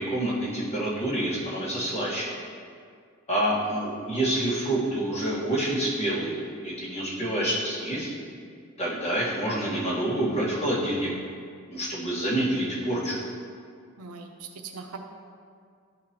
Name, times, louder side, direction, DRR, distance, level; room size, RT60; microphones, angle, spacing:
voice 1, 0.0-2.3 3.3-8.1 8.8-11.1 11.7-13.2, right 1 dB, 30° left, -7 dB, 1.6 m, -27 dB
voice 2, 14.0-15.0, right 5 dB, 80° right, 3 dB, 0.6 m, -40 dB
11.0 x 3.9 x 2.9 m, 2.2 s
head